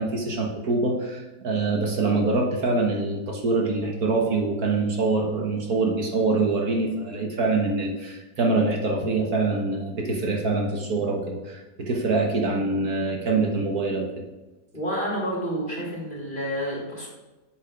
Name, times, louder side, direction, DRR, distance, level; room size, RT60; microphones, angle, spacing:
voice 1, 0.0-14.3, right 3 dB, 65° right, 0 dB, 1.8 m, -25 dB
voice 2, 14.7-17.1, equal, 30° left, -4 dB, 3.6 m, -29 dB
8.5 x 8.1 x 5.2 m, 1.1 s
omnidirectional pair, 1.8 m